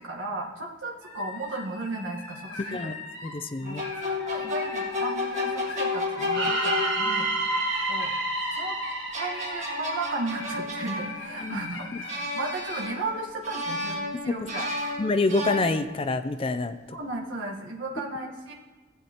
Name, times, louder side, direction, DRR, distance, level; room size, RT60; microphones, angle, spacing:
voice 1, 0.0-2.8 3.6-7.3 7.9-8.1 8.5-8.8 9.1-14.7 17.0-18.5, right 2 dB, 75° right, -1 dB, 1.3 m, -35 dB
sound 1, 1.0-10.6 11.0-12.2 12.6-12.8, left 3 dB, 80° left, 1.3 m, -41 dB
voice 2, 3.2-3.8 4.4-4.5 11.4-12.0 14.3-14.4 15.0-16.8, left 3 dB, 30° left, 8 dB, 0.4 m, -27 dB
sound 2, 3.6-7.3 8.9-11.6 12.1-13.2 13.4-16.1, left 2 dB, 35° right, 1.7 m, -32 dB
sound 3, 6.3-10.4, right 2 dB, 60° right, 1.6 m, -29 dB
15.5 x 7.9 x 2.9 m, 1.2 s
head